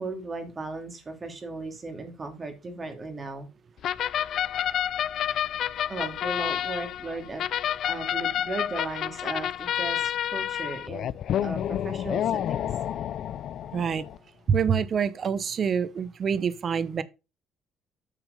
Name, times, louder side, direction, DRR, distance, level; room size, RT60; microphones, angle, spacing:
voice 1, 0.0-3.5 5.9-7.5 7.8-11.1 11.4-12.7, right 2 dB, 25° right, 2.7 m, -36 dB
sound 1, 3.8-14.2, left 10 dB, 60° left, 0.4 m, -29 dB
voice 2, 13.7-14.0 14.5-17.0, right 7 dB, 40° right, 0.8 m, -26 dB
8.8 x 6.2 x 5.2 m
cardioid pair, 110°, 0 cm